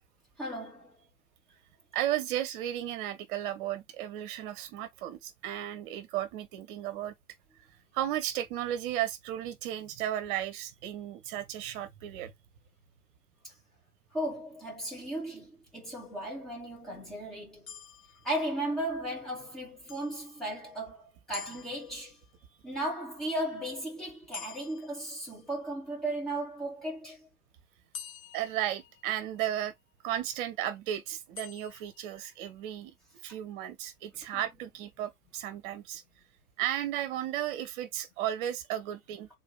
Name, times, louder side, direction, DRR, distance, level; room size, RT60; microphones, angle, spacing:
voice 1, 0.4-1.0 13.4-13.6 14.1-17.6 18.2-22.2 22.6-27.3 34.3-34.5, right 1 dB, ahead, 0.3 m, -36 dB
voice 2, 1.9-7.1 7.9-12.3 28.3-29.7 30.0-32.9 33.2-36.0 36.6-39.3, right 12 dB, 35° right, 0.9 m, -34 dB
sound 1, 17.7-19.0 19.9-20.8 21.3-22.5 24.3-25.8 27.9-29.5 31.3-32.5, left 8 dB, 65° left, 0.8 m, -49 dB
3.9 x 2.7 x 3.9 m
figure-of-eight pair, 100°, 45 cm